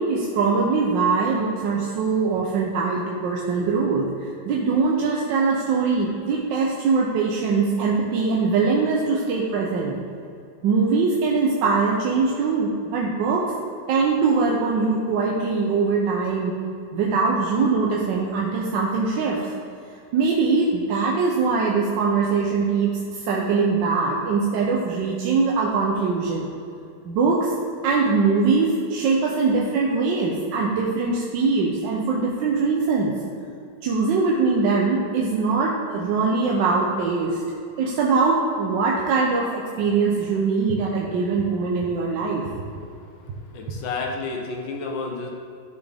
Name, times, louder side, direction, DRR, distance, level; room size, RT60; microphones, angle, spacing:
voice 1, 0.0-10.0 10.6-13.5 13.9-16.5 16.9-19.5 20.1-26.5 27.0-27.5 27.8-33.1 33.8-37.4 37.8-42.5, right 4 dB, 85° right, -2 dB, 1.4 m, -22 dB
voice 2, 43.4-45.3, left 3 dB, 85° left, 0 dB, 1.6 m, -30 dB
12.5 x 4.2 x 3.5 m, 2.5 s
omnidirectional pair, 1.9 m